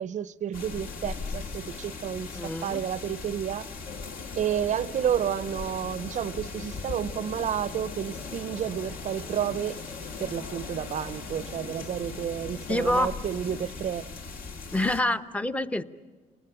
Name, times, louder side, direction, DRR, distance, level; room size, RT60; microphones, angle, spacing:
voice 1, 0.0-3.7 4.4-9.8 10.2-14.1, right 9 dB, 45° right, 0.7 m, -31 dB
sound 1, 0.5-15.0, left 4 dB, 60° left, 2.0 m, -39 dB
voice 2, 2.4-2.8 12.7-13.1 14.7-15.8, left 1 dB, 10° left, 0.8 m, -26 dB
sound 2, 3.9-13.7, left 5 dB, 90° left, 1.5 m, -45 dB
27.5 x 19.0 x 9.0 m
cardioid pair, 110°, 17 cm